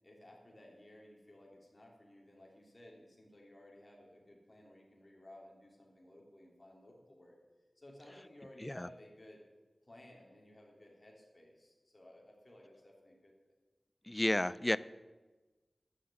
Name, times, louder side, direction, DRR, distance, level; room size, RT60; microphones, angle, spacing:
voice 1, 0.0-7.4 7.8-9.4 9.8-13.3, left 1 dB, 35° left, -1 dB, 3.6 m, -57 dB
voice 2, 14.1-14.8, left 1 dB, 20° left, 18 dB, 0.4 m, -32 dB
11.5 x 6.9 x 8.7 m, 1.2 s
wide cardioid pair, 55°, 0 cm